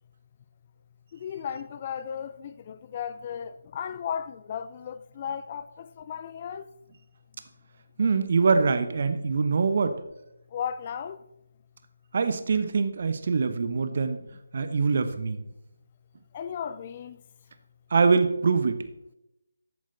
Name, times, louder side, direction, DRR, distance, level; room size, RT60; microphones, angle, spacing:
voice 1, 1.1-6.7 10.5-11.2 16.3-17.2, left 8 dB, 30° left, 0.5 m, -35 dB
voice 2, 8.0-10.0 12.1-14.2 14.5-15.4 17.9-18.8, right 4 dB, 45° right, 1.1 m, -24 dB
14.0 x 8.5 x 4.0 m
figure-of-eight pair, 150°, 0 cm